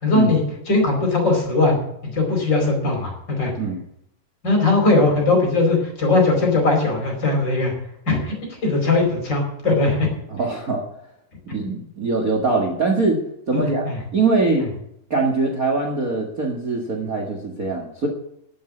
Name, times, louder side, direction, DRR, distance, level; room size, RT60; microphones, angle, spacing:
voice 1, 0.0-1.8 2.0-3.5 4.4-7.7 8.1-10.1 13.5-14.0, left 3 dB, 25° left, 1 dB, 4.9 m, -19 dB
voice 2, 10.3-10.8 11.5-13.2 13.5-13.9 14.1-14.7 15.1-18.1, right 3 dB, 75° right, 4 dB, 0.7 m, -22 dB
12.0 x 8.6 x 8.7 m, 0.75 s
omnidirectional pair, 4.9 m